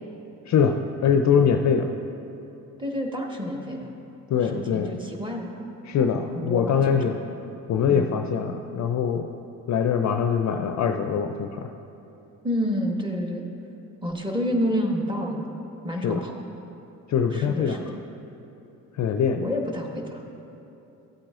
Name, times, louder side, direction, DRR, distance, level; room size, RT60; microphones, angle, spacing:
voice 1, 0.5-0.8 1.0-1.9 4.3-4.9 5.9-7.2 7.7-9.3 9.7-11.7 16.0-16.2 17.1-17.8 19.0-19.5, left 7 dB, 40° left, 6 dB, 0.5 m, -23 dB
voice 2, 2.8-3.9 4.4-5.5 6.3-7.3 7.9-8.1 12.4-13.4 14.0-15.4 15.8-16.3 17.3-17.9 19.4-20.2, equal, 10° right, 0 dB, 1.3 m, -29 dB
13.0 x 8.5 x 2.5 m, 2.9 s
hypercardioid pair, 50°, 43 cm